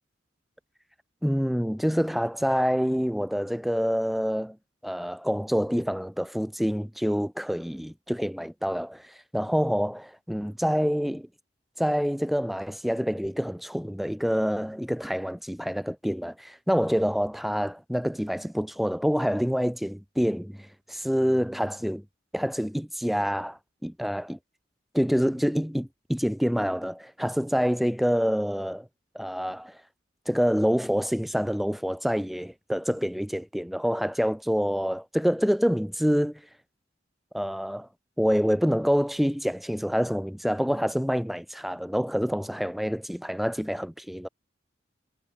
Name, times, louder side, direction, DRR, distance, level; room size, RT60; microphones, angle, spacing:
voice 1, 1.2-4.6 4.8-11.3 11.8-22.0 22.3-24.4 24.9-28.9 29.1-29.8 30.3-36.4 37.3-37.9 38.2-44.3, equal, ahead, 0.3 m, -27 dB
head